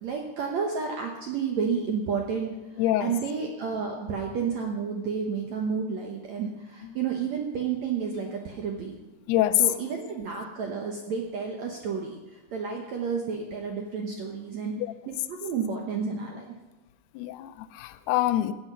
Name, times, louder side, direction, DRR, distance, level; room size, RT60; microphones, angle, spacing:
voice 1, 0.0-2.6 3.0-9.0 9.6-14.7 15.1-16.5, right 6 dB, 70° right, 1 dB, 1.8 m, -31 dB
voice 2, 2.8-3.1 9.3-9.6 14.8-14.9 17.2-18.5, left 14 dB, 85° left, 12 dB, 2.6 m, -25 dB
16.0 x 8.8 x 5.5 m, 1.1 s
omnidirectional pair, 4.6 m